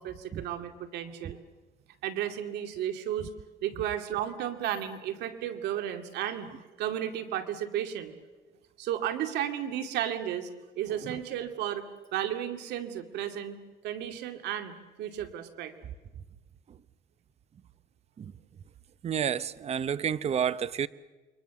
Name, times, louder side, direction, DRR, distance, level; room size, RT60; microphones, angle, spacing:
voice 1, 0.0-1.4 2.0-3.3 3.6-8.1 8.8-10.5 10.8-11.8 12.1-13.6 13.8-15.7, right 10 dB, 80° right, 2.4 m, -33 dB
voice 2, 19.0-20.9, right 8 dB, 40° right, 0.8 m, -30 dB
29.0 x 23.0 x 7.1 m
cardioid pair, 110°, 17 cm